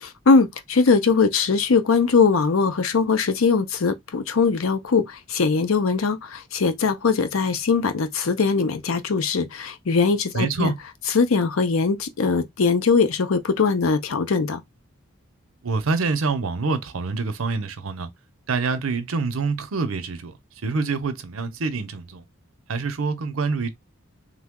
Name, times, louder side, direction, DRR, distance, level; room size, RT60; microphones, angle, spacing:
voice 1, 0.0-10.7 11.1-14.6, left 4 dB, 85° left, 0.6 m, -21 dB
voice 2, 10.3-10.8 15.6-18.1 18.5-20.3 20.6-22.2 22.7-23.7, right 4 dB, 90° right, 0.7 m, -26 dB
3.2 x 2.1 x 3.6 m
head